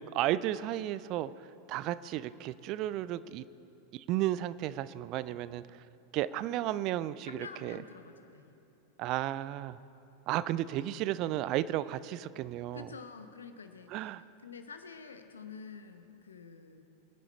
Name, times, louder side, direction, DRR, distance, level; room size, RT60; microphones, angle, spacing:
voice 1, 0.1-1.3 1.7-3.4 3.9-5.6 6.1-7.8 9.0-9.8 10.3-12.9 13.9-14.2, right 13 dB, 40° right, 16 dB, 0.4 m, -33 dB
voice 2, 7.3-8.6 12.7-14.1 14.4-16.8, left 5 dB, 70° left, 8 dB, 1.1 m, -48 dB
24.5 x 10.0 x 4.3 m, 3.0 s
figure-of-eight pair, 90°, 0 cm